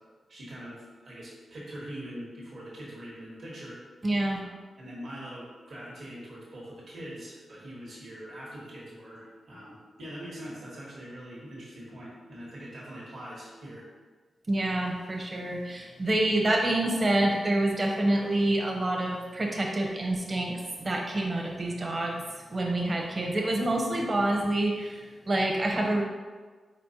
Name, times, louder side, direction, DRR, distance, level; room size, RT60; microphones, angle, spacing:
voice 1, 0.3-3.8 4.3-4.5 4.8-13.9, equal, 70° right, -6 dB, 1.4 m, -43 dB
voice 2, 4.0-4.4 14.5-26.0, right 1 dB, 45° right, 0 dB, 0.9 m, -27 dB
4.3 x 4.2 x 2.8 m, 1.4 s
supercardioid pair, 45°, 0 cm